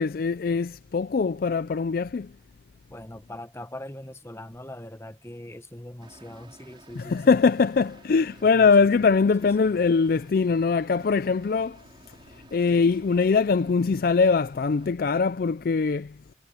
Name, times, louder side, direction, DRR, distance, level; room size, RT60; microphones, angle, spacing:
voice 1, 0.0-2.3 7.0-11.8 12.5-16.1, left 5 dB, 50° left, 0.4 m, -22 dB
voice 2, 2.9-7.5 8.4-8.9 9.4-9.8, left 1 dB, 15° left, 1.3 m, -42 dB
sound 1, 6.0-14.9, right 1 dB, 25° right, 3.9 m, -53 dB
head